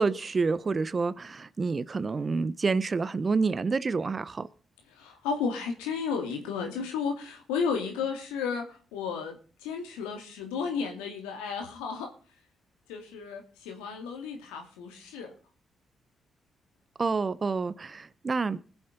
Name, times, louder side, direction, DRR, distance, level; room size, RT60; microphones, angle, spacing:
voice 1, 0.0-4.5 17.0-18.6, right 4 dB, 40° right, 0.8 m, -28 dB
voice 2, 4.9-12.1 12.9-15.3, left 5 dB, 90° left, 2.4 m, -33 dB
20.5 x 7.3 x 5.1 m
hypercardioid pair, 45°, 0 cm